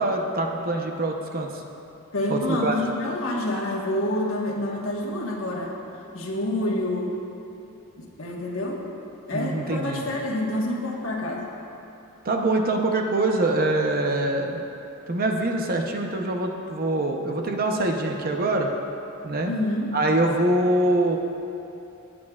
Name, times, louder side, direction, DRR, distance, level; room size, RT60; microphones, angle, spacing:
voice 1, 0.0-1.6 2.3-2.8 9.3-10.1 12.2-14.6 15.1-18.7 19.2-19.5 19.9-21.2, right 2 dB, 45° right, 2 dB, 0.8 m, -24 dB
voice 2, 2.1-5.7 6.1-7.2 8.0-8.9 9.3-11.5 19.4-19.9, left 1 dB, 70° left, -2 dB, 1.4 m, -27 dB
17.0 x 8.7 x 2.4 m, 2.9 s
head